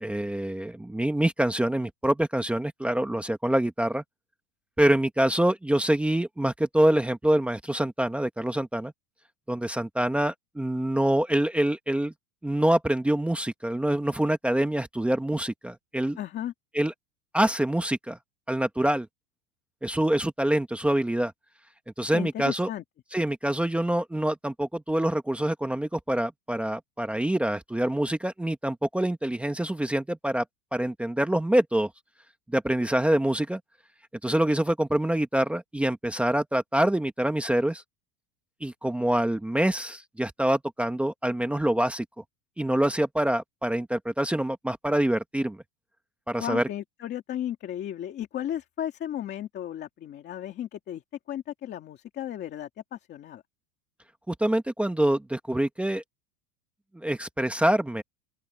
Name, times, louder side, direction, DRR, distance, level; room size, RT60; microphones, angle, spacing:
voice 1, 0.0-4.0 4.8-8.9 9.5-12.1 12.4-16.2 16.7-16.9 17.3-18.2 18.5-19.1 19.8-21.3 22.0-22.7 23.1-30.4 30.7-31.9 32.5-33.6 34.2-37.8 38.6-42.0 42.6-45.6 46.3-46.6 54.3-56.0 56.9-58.0, right 1 dB, 5° right, 1.0 m, -25 dB
voice 2, 16.2-16.5 22.1-22.8 46.4-51.0 51.3-53.4, left 11 dB, 25° left, 2.4 m, -34 dB
open air
supercardioid pair, 175°, 42 cm